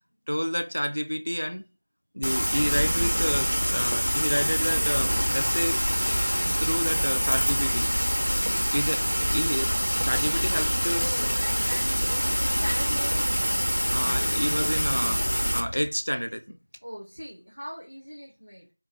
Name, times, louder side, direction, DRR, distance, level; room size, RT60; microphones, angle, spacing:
voice 1, 0.3-1.6 2.1-5.8 6.6-7.9 8.7-9.0 9.3-11.2 13.9-15.2 15.5-16.6, equal, 80° left, 0.3 m, -29 dB
Rain, 2.2-15.6, equal, 85° right, 0.6 m, -25 dB
sound 1, 3.9-15.9, equal, 60° left, 1.2 m, -37 dB
voice 2, 10.9-13.4 16.8-18.7, equal, 25° right, 0.4 m, -39 dB
2.8 x 2.1 x 2.8 m
figure-of-eight pair, 180°, 0 cm